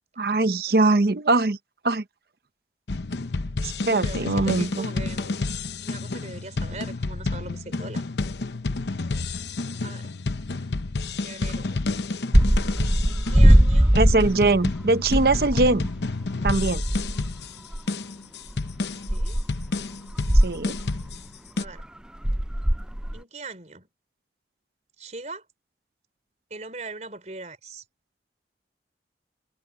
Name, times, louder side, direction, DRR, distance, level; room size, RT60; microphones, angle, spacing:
voice 1, 0.2-1.6 1.8-2.0 3.6-4.9 13.9-15.9 16.4-16.8 20.4-20.8, right 2 dB, 60° right, 0.8 m, -22 dB
sound 1, 2.9-21.6, left 3 dB, 80° left, 0.8 m, -30 dB
voice 2, 3.8-5.3 5.8-8.0 9.8-10.1 11.2-11.8 13.1-14.0 19.1-19.4 21.6-21.9 23.1-23.9 25.0-25.4 26.5-27.8, right 3 dB, 40° right, 4.4 m, -40 dB
sound 2, 12.3-14.8 15.0-15.8 16.1-16.2 16.5-17.3 17.7-17.8 18.5-18.6 19.1-19.7 20.1-21.2 21.6-21.8 22.2-23.2, equal, 5° right, 0.3 m, -20 dB
sound 3, 13.9-19.7, equal, 55° left, 7.9 m, -55 dB
head